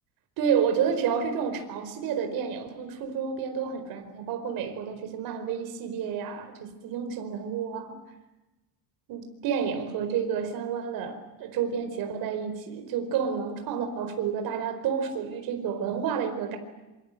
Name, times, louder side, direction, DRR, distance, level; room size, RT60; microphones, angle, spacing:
voice 1, 0.4-8.0 9.1-16.6, right 7 dB, 60° right, 4.8 m, -30 dB
26.5 x 25.5 x 7.9 m
cardioid pair, 165°, 40 cm